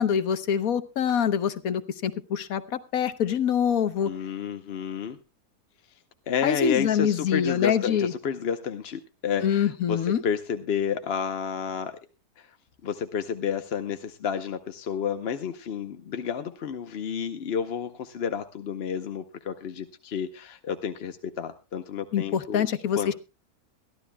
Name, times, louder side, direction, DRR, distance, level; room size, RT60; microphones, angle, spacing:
voice 1, 0.0-4.1 6.4-8.1 9.4-10.2 22.1-23.1, left 8 dB, 65° left, 13 dB, 1.4 m, -25 dB
voice 2, 4.1-5.2 6.3-11.9 12.4-12.5 12.8-22.7 23.0-23.1, left 7 dB, 50° left, 8 dB, 0.9 m, -30 dB
22.5 x 14.0 x 2.2 m, 0.29 s
omnidirectional pair, 1.6 m